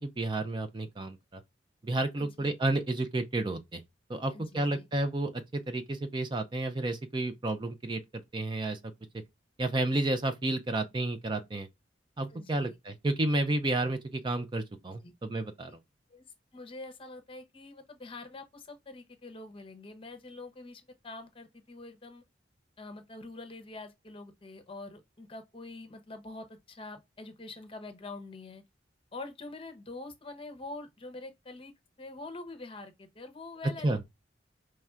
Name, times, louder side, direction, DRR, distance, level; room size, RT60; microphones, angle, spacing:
voice 1, 0.0-1.4 1.8-3.8 4.1-8.0 8.3-8.8 9.6-11.7 12.2-15.7 33.8-34.0, right 2 dB, 25° right, 0.4 m, -31 dB
voice 2, 2.2-2.5 4.3-4.9 12.3-12.8 15.0-15.1 16.1-16.3 16.5-22.2 22.8-28.6 29.1-34.0, left 2 dB, 30° left, 0.8 m, -45 dB
5.8 x 3.2 x 2.4 m
head